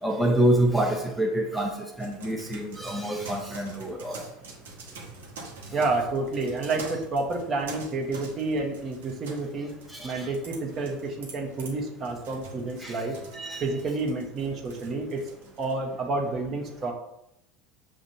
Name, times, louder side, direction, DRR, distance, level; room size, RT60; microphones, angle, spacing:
voice 1, 0.0-4.2 9.9-10.3 12.8-13.0 13.3-13.6, right 1 dB, ahead, 0 dB, 0.7 m, -27 dB
sound 1, 2.0-15.8, right 3 dB, 85° right, 1.2 m, -46 dB
voice 2, 5.7-9.7 10.0-13.1 13.6-15.3 15.6-16.9, right 3 dB, 40° right, 1 dB, 1.0 m, -29 dB
7.4 x 2.5 x 2.7 m, 0.84 s
hypercardioid pair, 85°, 0 cm